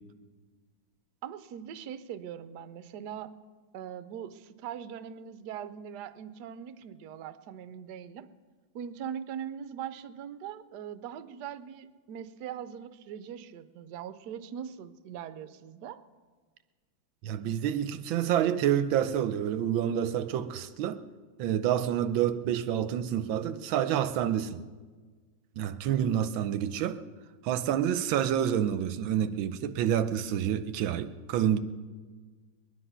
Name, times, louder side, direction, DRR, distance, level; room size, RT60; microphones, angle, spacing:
voice 1, 1.2-3.3 3.7-8.3 8.7-16.0, right 9 dB, 65° right, 1.2 m, -41 dB
voice 2, 17.2-21.0 21.4-24.6 25.6-27.0 27.4-31.6, right 10 dB, 85° right, 1.4 m, -28 dB
21.5 x 10.0 x 5.6 m
omnidirectional pair, 2.2 m